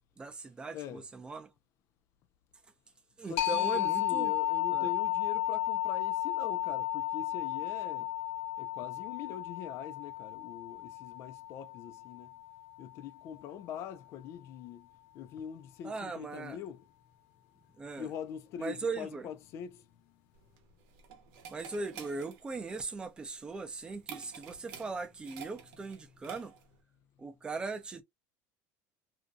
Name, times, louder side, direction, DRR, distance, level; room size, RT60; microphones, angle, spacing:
voice 1, 0.2-1.5 3.2-4.3 4.7-4.9 15.8-16.6 17.8-18.1 18.6-19.3 21.5-26.5 27.2-28.0, right 4 dB, 15° right, 0.5 m, -39 dB
voice 2, 0.7-1.0 3.3-8.1 8.6-12.3 12.8-14.9 15.1-16.8 18.0-20.1, left 9 dB, 45° left, 0.4 m, -43 dB
sound 1, 3.4-12.8, left 14 dB, 80° left, 0.7 m, -33 dB
sound 2, 20.4-26.8, right 8 dB, 70° right, 0.8 m, -50 dB
2.5 x 2.2 x 2.5 m
cardioid pair, 155°, 6 cm